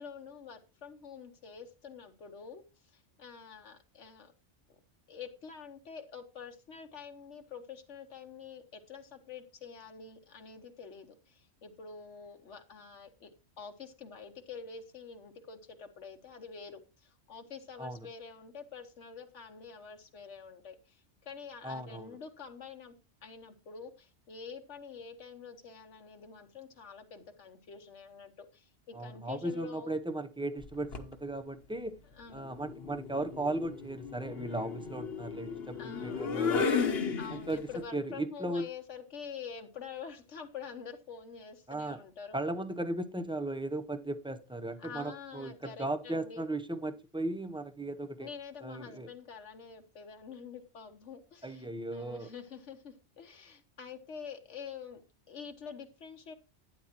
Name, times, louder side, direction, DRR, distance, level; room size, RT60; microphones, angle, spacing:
voice 1, 0.0-2.6 2.9-4.3 5.1-22.9 23.2-30.0 32.1-32.6 35.8-36.8 37.2-42.4 44.8-46.4 48.2-55.0 55.3-56.3, left 6 dB, 85° left, 1.4 m, -47 dB
voice 2, 21.6-22.2 28.9-32.0 32.3-36.7 37.0-38.6 41.7-42.0 42.3-48.3 48.6-49.1 51.4-52.3, right 1 dB, 5° right, 0.5 m, -37 dB
sound 1, 30.6-31.1 32.5-37.8, left 5 dB, 60° left, 1.2 m, -34 dB
12.0 x 9.9 x 2.9 m
omnidirectional pair, 1.2 m